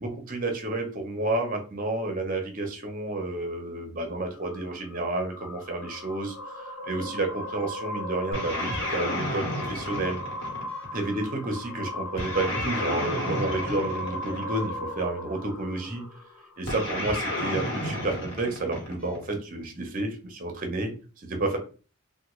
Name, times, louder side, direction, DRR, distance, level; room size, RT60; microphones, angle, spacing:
voice 1, 0.0-10.2 10.9-16.0 16.6-20.9 21.2-21.6, right 2 dB, 35° right, 4 dB, 0.6 m, -30 dB
sound 1, 4.3-16.8, left 1 dB, 90° left, 0.6 m, -37 dB
sound 2, 8.3-10.9 12.2-14.7 16.7-19.2, left 1 dB, 55° left, 1.2 m, -31 dB
3.4 x 2.2 x 3.0 m, 0.37 s
head